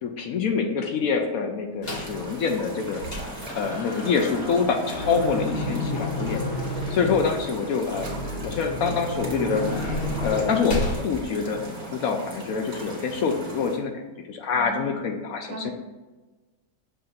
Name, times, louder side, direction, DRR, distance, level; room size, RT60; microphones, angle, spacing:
voice 1, 0.0-3.0 3.5-6.4 6.9-9.7 10.2-13.9 14.3-15.7, left 5 dB, 70° left, 4 dB, 0.9 m, -26 dB
sound 1, 1.8-2.2 2.6-11.0, left 1 dB, 40° left, 1.1 m, -31 dB
sound 2, 1.9-13.8, right 1 dB, 25° right, 1.4 m, -39 dB
voice 2, 5.5-5.9 14.5-15.0 15.5-15.7, right 4 dB, 85° right, 0 dB, 1.4 m, -36 dB
6.8 x 2.6 x 5.6 m, 1.2 s
omnidirectional pair, 1.9 m